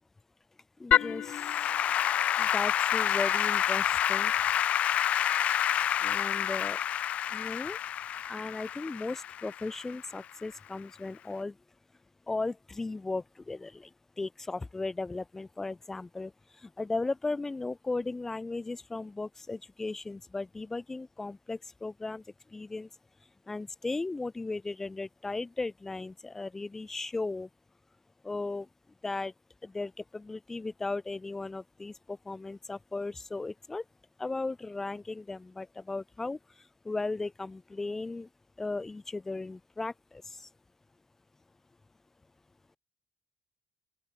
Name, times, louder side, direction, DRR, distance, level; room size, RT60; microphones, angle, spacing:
voice 1, 0.8-1.5 2.4-4.3 6.0-6.8 7.3-7.8 8.3-11.6 12.3-13.9 14.2-16.3 16.6-22.2 22.5-22.9 23.5-27.5 28.2-28.7 29.0-29.3 29.6-33.8 34.2-36.4 36.8-38.3 38.6-40.5, left 3 dB, 15° left, 6.1 m, -36 dB
Applause / Keyboard (musical), 0.9-10.2, left 10 dB, 50° left, 2.0 m, -28 dB
open air
cardioid pair, 155°, 3 cm